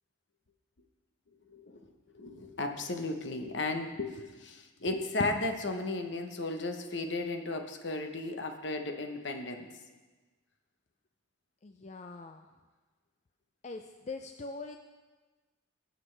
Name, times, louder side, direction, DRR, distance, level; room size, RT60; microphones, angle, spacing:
voice 1, 2.1-9.7, left 2 dB, 60° left, 5 dB, 1.0 m, -35 dB
voice 2, 11.6-12.5 13.6-14.8, left 3 dB, 35° left, 5 dB, 0.4 m, -42 dB
19.0 x 7.8 x 3.3 m, 1.3 s
head